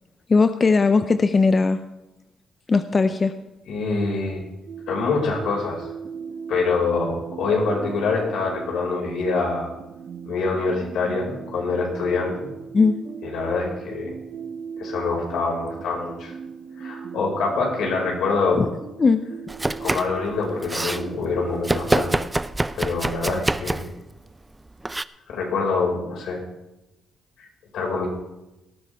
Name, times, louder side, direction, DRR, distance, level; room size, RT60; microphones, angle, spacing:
voice 1, 0.3-1.8 2.7-3.3 12.7-13.0 18.6-18.7 19.0-19.2, left 4 dB, 35° left, 10 dB, 0.6 m, -18 dB
voice 2, 3.6-4.4 4.9-5.9 6.5-9.7 10.3-12.5 13.2-14.1 14.8-16.3 16.8-18.6 19.8-22.1 22.7-23.9 25.3-26.4 27.4-27.5 27.7-28.1, left 4 dB, 80° left, -1 dB, 5.4 m, -25 dB
sound 1, 4.7-22.1, right 6 dB, 65° right, 5.2 m, -38 dB
Domestic sounds home sounds, 19.5-20.2 20.5-21.0 21.6-24.0 24.8-25.0, right 2 dB, 15° right, 0.5 m, -25 dB
18.5 x 12.5 x 3.5 m, 0.97 s
cardioid pair, 90°, 0 cm